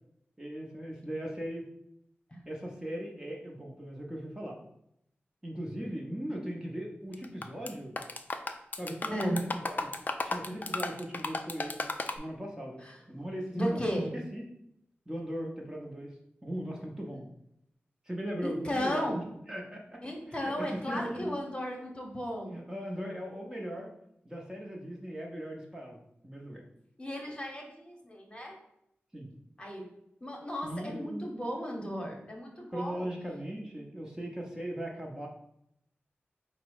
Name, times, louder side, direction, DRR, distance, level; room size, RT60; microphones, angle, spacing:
voice 1, 0.4-1.7 2.5-4.6 5.4-7.9 8.8-9.9 10.3-11.8 12.1-12.8 13.1-14.4 15.1-16.1 16.4-17.3 18.0-19.1 19.5-20.0 20.3-21.4 22.5-23.9 24.2-26.6 29.1-29.3 30.6-31.3 32.7-35.3, equal, 15° right, -2 dB, 0.7 m, -39 dB
sound 1, 7.1-7.7 8.0-12.2, left 3 dB, 45° left, 0.4 m, -34 dB
voice 2, 9.1-9.4 12.8-13.0 13.5-14.1 18.4-19.2 20.0-22.6 27.0-28.6 29.6-29.9 30.2-33.1, equal, 25° left, 0 dB, 1.0 m, -34 dB
4.5 x 2.1 x 4.6 m, 0.77 s
wide cardioid pair, 75°, 4 cm